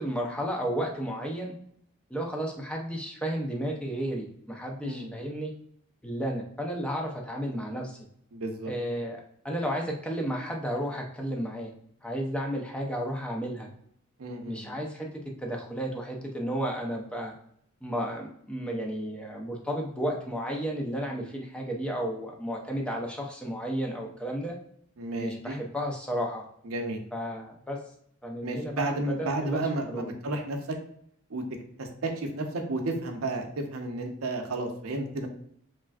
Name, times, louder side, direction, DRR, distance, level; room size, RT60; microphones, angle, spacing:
voice 1, 0.0-1.6 2.1-5.5 6.0-8.0 8.7-11.7 12.0-13.7 14.4-15.1 15.4-17.3 17.8-24.6 25.1-26.4 27.1-27.8 28.2-30.1, equal, 5° left, 0 dB, 0.4 m, -33 dB
voice 2, 4.8-5.1 8.3-8.7 14.2-14.8 25.0-25.6 26.6-27.0 28.4-30.8 31.3-31.4 31.8-35.3, right 2 dB, 75° right, 4 dB, 0.6 m, -32 dB
3.2 x 2.4 x 2.3 m, 0.69 s
head